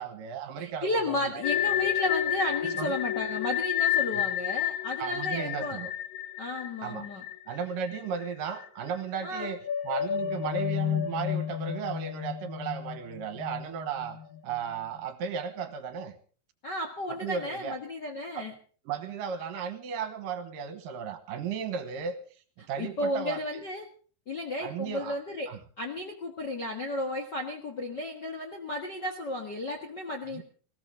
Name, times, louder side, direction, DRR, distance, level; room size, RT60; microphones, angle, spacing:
voice 1, 0.0-1.4 1.8-1.9 2.6-2.9 4.1-4.3 5.0-5.9 6.8-7.1 7.5-9.6 9.8-14.2 14.4-16.2 17.1-17.8 18.3-18.5 18.9-22.2 22.7-23.4 24.6-25.2 25.5-25.6 30.3-30.4, right 7 dB, 70° right, 9 dB, 2.7 m, -35 dB
voice 2, 0.6-5.8 6.4-7.2 9.2-9.5 16.6-18.5 22.8-23.8 24.3-25.5 25.8-30.4, left 1 dB, 50° left, 2 dB, 1.3 m, -33 dB
sound 1, 1.4-8.3 8.6-8.7 9.2-14.6, left 11 dB, 85° left, 3.3 m, -31 dB
19.5 x 17.0 x 3.8 m, 0.41 s
omnidirectional pair, 4.4 m